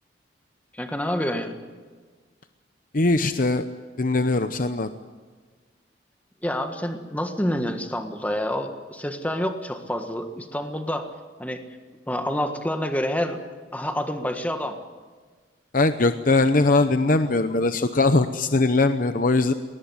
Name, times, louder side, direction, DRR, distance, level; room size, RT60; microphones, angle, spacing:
voice 1, 0.7-1.6 6.4-11.1 11.4-11.6 12.1-13.4 13.7-14.8, left 1 dB, 10° left, 6 dB, 1.6 m, -28 dB
voice 2, 2.9-3.6 4.0-4.9 15.7-19.5, left 2 dB, 45° left, 9 dB, 0.8 m, -21 dB
21.5 x 19.0 x 9.6 m, 1.5 s
head